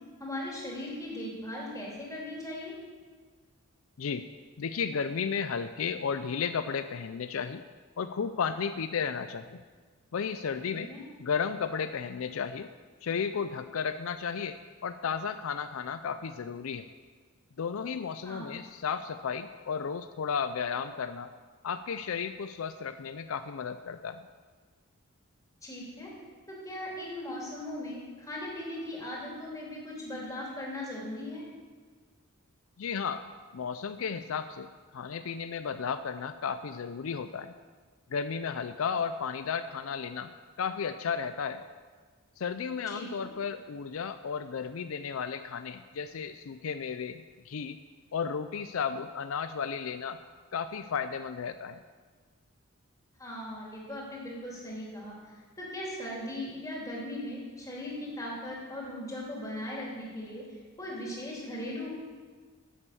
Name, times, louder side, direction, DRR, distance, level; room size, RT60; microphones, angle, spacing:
voice 1, 0.2-2.7 10.7-11.0 18.2-18.5 25.6-26.1 26.5-31.4 42.9-43.3 53.2-55.1 55.6-60.4 60.8-61.9, left 1 dB, 15° left, -4 dB, 3.3 m, -38 dB
voice 2, 4.0-4.3 4.6-7.6 8.0-9.6 10.1-10.9 11.2-12.7 13.0-16.9 17.6-21.3 21.6-24.2 32.8-33.2 33.5-37.5 38.1-40.3 40.6-41.6 42.4-47.8 48.1-50.2 50.5-51.8, left 6 dB, 75° left, 10 dB, 0.4 m, -33 dB
11.0 x 8.9 x 6.9 m, 1.5 s
head